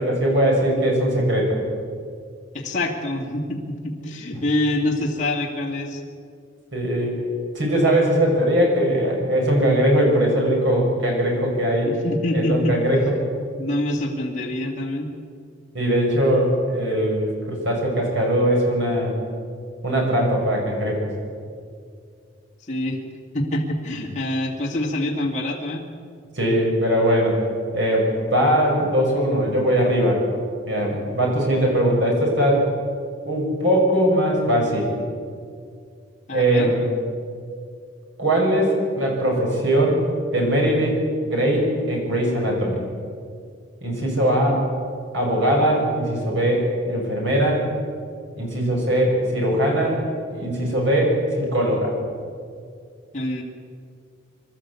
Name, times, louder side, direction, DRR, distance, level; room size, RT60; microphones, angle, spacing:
voice 1, 0.0-1.6 6.7-7.1 7.5-11.9 12.3-13.1 15.7-19.1 19.8-21.1 26.3-27.5 27.7-30.3 30.7-32.7 33.2-34.9 36.3-36.8 38.2-40.0 40.3-42.8 43.8-44.6 45.1-47.7 48.4-50.0 50.3-52.0, right 1 dB, 70° right, -1 dB, 6.3 m, -20 dB
voice 2, 2.5-6.0 11.8-12.8 13.6-15.1 22.7-23.0 23.3-25.8 36.3-36.7 44.5-44.6 53.1-53.4, left 1 dB, 35° left, -3 dB, 2.5 m, -25 dB
25.0 x 12.5 x 8.4 m, 2.2 s
head